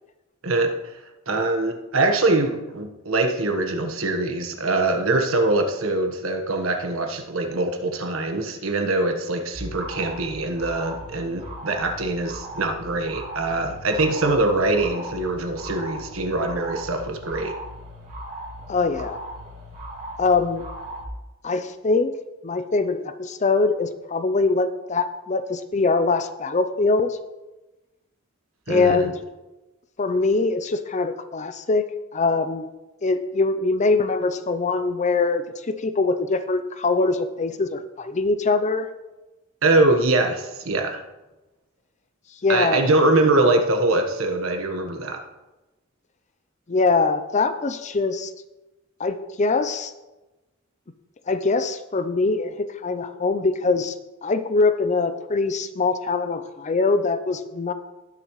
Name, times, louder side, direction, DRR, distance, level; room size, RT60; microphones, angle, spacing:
voice 1, 0.4-0.9 1.3-17.6 28.7-29.1 39.6-41.0 42.5-45.2, right 2 dB, 90° right, 4 dB, 1.3 m, -23 dB
sound 1, 9.5-21.0, right 1 dB, 40° right, 2.8 m, -38 dB
voice 2, 18.7-19.2 20.2-20.6 21.4-22.1 22.4-27.2 28.7-29.1 30.0-31.9 32.1-32.7 33.0-38.9 42.4-42.9 46.7-48.3 49.0-49.9 51.3-53.9 54.2-57.7, left 3 dB, 35° left, 11 dB, 0.6 m, -23 dB
18.5 x 6.9 x 3.1 m, 1.1 s
head